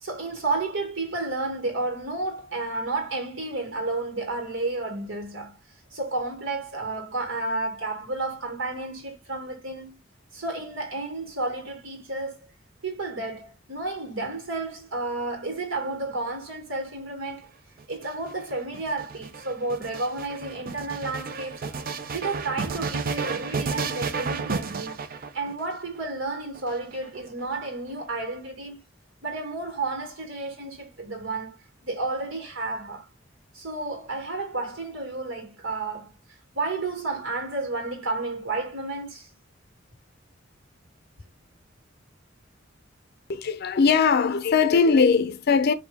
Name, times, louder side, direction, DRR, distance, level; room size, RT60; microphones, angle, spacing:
voice 1, 0.0-5.6 5.9-10.0 10.3-12.4 12.8-17.5 17.9-21.8 22.1-25.0 25.3-28.8 29.2-31.6 31.8-33.1 33.5-36.1 36.5-39.3, right 3 dB, 75° right, 1.7 m, -31 dB
sound 1, 17.8-25.7 26.5-27.4, right 4 dB, 50° right, 0.5 m, -32 dB
voice 2, 43.3-45.7, left 5 dB, 55° left, 0.5 m, -20 dB
4.4 x 2.7 x 3.4 m
head